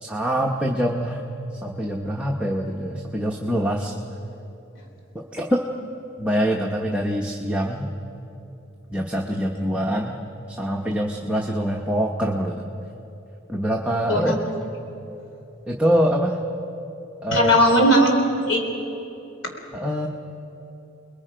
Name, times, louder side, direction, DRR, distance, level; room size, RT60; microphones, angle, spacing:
voice 1, 0.0-1.2 1.6-3.9 5.1-5.6 6.2-7.9 8.9-10.2 10.5-12.6 13.5-14.4 15.7-16.4 17.2-17.6 19.7-20.1, equal, 5° right, -1 dB, 1.0 m, -24 dB
voice 2, 17.3-18.2 18.5-18.6, equal, 80° left, 2 dB, 3.4 m, -17 dB
29.0 x 21.0 x 5.1 m, 2.9 s
head